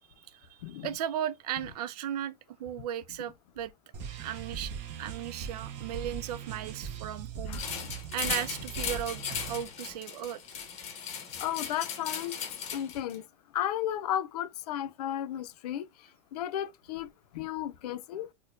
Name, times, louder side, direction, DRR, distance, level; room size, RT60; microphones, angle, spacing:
voice 1, 0.2-2.3 2.6-3.7 4.2-4.7 5.0-10.4, right 10 dB, 80° right, 0.5 m, -36 dB
sound 1, 3.9-9.6, right 7 dB, 40° right, 0.7 m, -40 dB
sound 2, 7.5-13.2, left 7 dB, 30° left, 0.8 m, -37 dB
voice 2, 11.4-12.4 12.7-13.2 13.5-15.9 16.3-18.3, left 11 dB, 85° left, 0.5 m, -34 dB
4.2 x 2.2 x 2.4 m
supercardioid pair, 150°, 20 cm